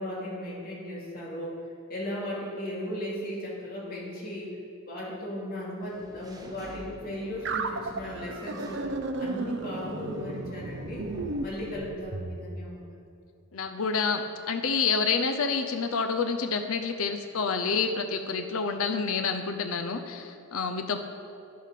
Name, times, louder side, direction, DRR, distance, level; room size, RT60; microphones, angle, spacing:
voice 1, 0.0-1.6 1.9-4.6 4.9-8.9 9.2-11.1 11.4-13.0, left 1 dB, 45° left, -5 dB, 2.7 m, -36 dB
Engine / Mechanisms, 5.8-11.8, equal, 15° right, 0.8 m, -49 dB
sound 1, 7.5-12.4, right 3 dB, 55° right, 0.7 m, -34 dB
voice 2, 13.5-21.0, left 5 dB, 75° left, 6 dB, 0.7 m, -28 dB
10.5 x 8.4 x 5.8 m, 2.5 s
head